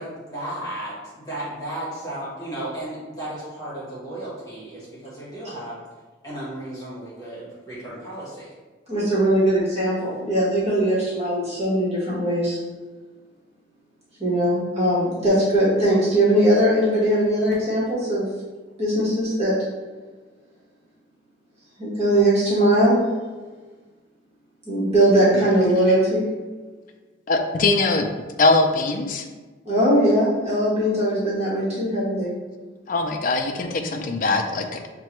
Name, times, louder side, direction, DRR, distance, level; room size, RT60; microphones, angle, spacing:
voice 1, 0.0-5.8 6.2-8.5, right 1 dB, 20° left, -8 dB, 1.2 m, -34 dB
voice 2, 8.9-12.6 14.2-18.2 18.8-19.6 21.8-23.0 24.7-26.3 29.6-32.3, right 1 dB, 35° right, -9 dB, 1.3 m, -20 dB
voice 3, 27.3-28.1 28.4-29.2 32.9-34.9, left 3 dB, 45° left, 4 dB, 0.4 m, -21 dB
6.4 x 2.2 x 3.0 m, 1.3 s
head